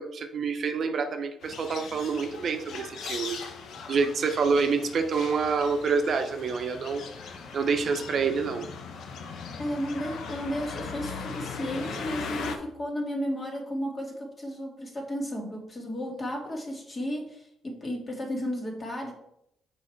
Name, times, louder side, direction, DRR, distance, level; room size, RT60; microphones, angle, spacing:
voice 1, 0.0-3.4 3.9-7.0 7.5-8.7, right 5 dB, 55° right, 6 dB, 0.8 m, -27 dB
sound 1, 1.4-12.6, left 5 dB, 70° left, 0.9 m, -39 dB
voice 2, 9.6-19.1, equal, 30° left, 1 dB, 2.0 m, -33 dB
6.3 x 5.0 x 4.5 m, 0.76 s
cardioid pair, 90°, 0 cm